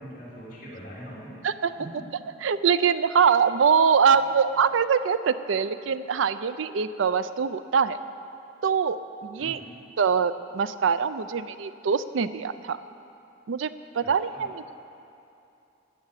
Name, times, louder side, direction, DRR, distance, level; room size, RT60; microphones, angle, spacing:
voice 1, 0.0-1.3 1.6-2.1 3.1-3.2 4.0-4.3 9.4-9.7 14.0-14.5, equal, 45° left, -7 dB, 2.8 m, -43 dB
voice 2, 2.4-8.0 8.6-9.6 10.0-12.8 13.5-13.7 13.9-14.6, right 6 dB, 80° right, 13 dB, 0.4 m, -23 dB
10.5 x 10.0 x 7.3 m, 2.7 s
head